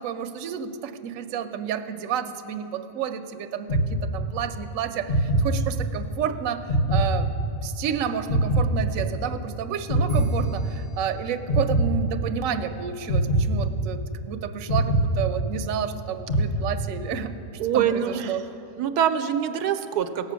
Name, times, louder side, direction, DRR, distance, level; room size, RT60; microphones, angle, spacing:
voice 1, 0.0-7.3 7.6-18.4, right 8 dB, 65° right, 7 dB, 0.9 m, -30 dB
sound 1, 3.7-4.6 5.1-6.1 6.7-7.8 8.3-9.5 9.9-11.1 11.5-12.5 13.1-14.2 14.7-15.9 16.3-17.2, right 1 dB, 35° left, 1.0 m, -24 dB
voice 2, 17.6-18.4 18.8-20.3, right 9 dB, 85° right, 9 dB, 1.1 m, -24 dB
17.0 x 7.4 x 6.2 m, 2.8 s
omnidirectional pair, 1.6 m